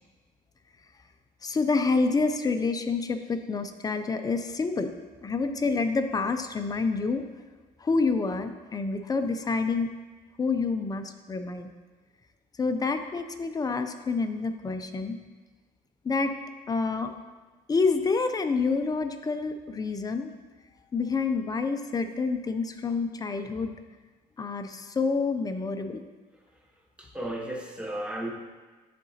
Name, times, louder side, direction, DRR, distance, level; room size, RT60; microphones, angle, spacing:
voice 1, 1.4-4.9 5.2-7.2 7.8-9.9 10.4-11.7 12.6-15.2 16.0-16.4 16.7-17.1 17.7-20.3 20.9-23.7 24.4-26.0, left 4 dB, 20° left, 8 dB, 0.4 m, -28 dB
voice 2, 27.0-28.3, right 1 dB, 5° right, 0 dB, 1.0 m, -34 dB
10.5 x 3.7 x 2.8 m, 1.3 s
cardioid pair, 110°, 17 cm